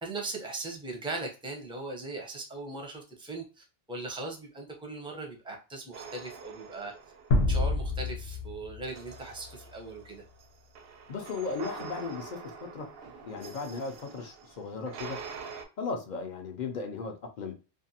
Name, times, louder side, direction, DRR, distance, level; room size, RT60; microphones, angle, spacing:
voice 1, 0.0-6.9 7.5-10.2, right 3 dB, 5° right, 1 dB, 0.5 m, -39 dB
sound 1, 5.9-7.9 8.9-15.6, right 5 dB, 75° right, 0.8 m, -45 dB
sound 2, 7.3-9.7, left 2 dB, 85° left, 0.9 m, -28 dB
voice 2, 11.1-12.4 12.7-12.9 13.2-15.2 15.8-17.5, left 4 dB, 55° left, 4 dB, 0.6 m, -36 dB
2.6 x 2.4 x 2.7 m, 0.33 s
omnidirectional pair, 1.0 m